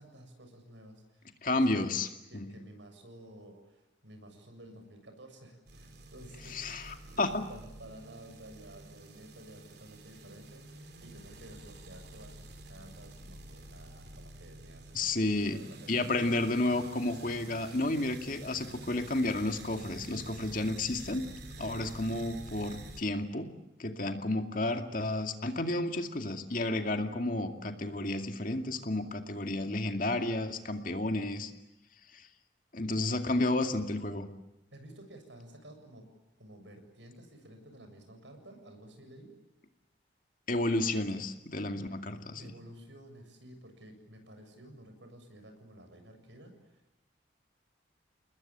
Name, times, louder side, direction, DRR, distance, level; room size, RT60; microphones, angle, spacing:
voice 1, 0.0-1.8 2.3-7.2 7.5-16.0 34.7-36.1 36.4-39.3 42.4-47.0, right 1 dB, 80° right, 6 dB, 7.2 m, -52 dB
voice 2, 1.4-2.1 2.3-2.5 6.5-7.5 14.9-15.6 15.9-21.2 21.6-23.5 23.8-31.5 32.1-32.3 32.7-34.3 40.5-42.5, left 2 dB, 45° left, 6 dB, 2.3 m, -31 dB
sound 1, 5.7-23.0, right 2 dB, 60° right, 3.6 m, -49 dB
30.0 x 21.0 x 8.9 m, 0.98 s
head